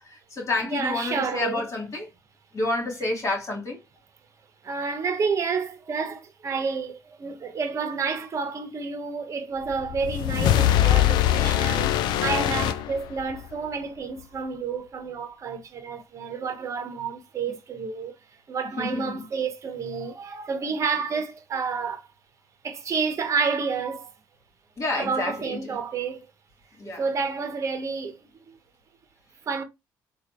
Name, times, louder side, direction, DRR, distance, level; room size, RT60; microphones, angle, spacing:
voice 1, 0.0-2.1 2.5-3.8 18.8-19.3 24.8-25.8 26.8-27.1, left 2 dB, 40° left, 2.5 m, -29 dB
voice 2, 0.6-1.6 4.6-18.1 18.5-22.0 22.6-24.1 25.0-26.3 27.0-28.6 29.5-29.6, right 5 dB, 40° right, 1.0 m, -30 dB
sound 1, 9.7-13.5, left 12 dB, 70° left, 0.4 m, -22 dB
4.1 x 2.6 x 2.9 m
supercardioid pair, 90°, 8 cm